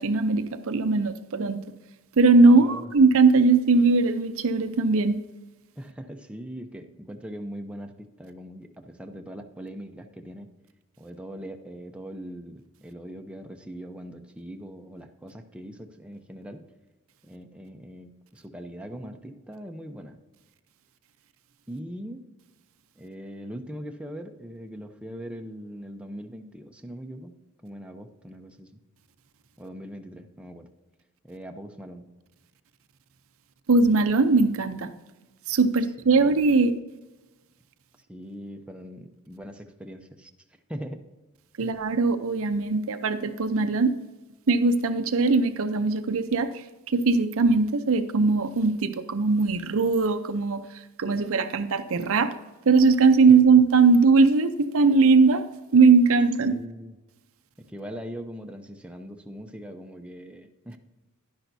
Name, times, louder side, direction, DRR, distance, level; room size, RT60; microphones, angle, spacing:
voice 1, 0.0-1.6 2.2-5.2 33.7-34.9 35.5-36.8 41.6-43.9 44.5-52.3 52.7-55.4 55.7-56.5, right 4 dB, 65° right, 9 dB, 0.6 m, -20 dB
voice 2, 2.5-2.9 5.8-10.5 11.0-16.6 17.2-20.2 21.7-22.2 22.9-27.3 27.6-28.7 29.6-30.7 31.2-32.1 36.0-36.3 38.1-40.3 40.7-41.0 41.6-41.8 56.4-57.0 57.7-60.8, equal, 5° right, 4 dB, 0.6 m, -41 dB
11.5 x 10.5 x 2.7 m, 1.1 s
head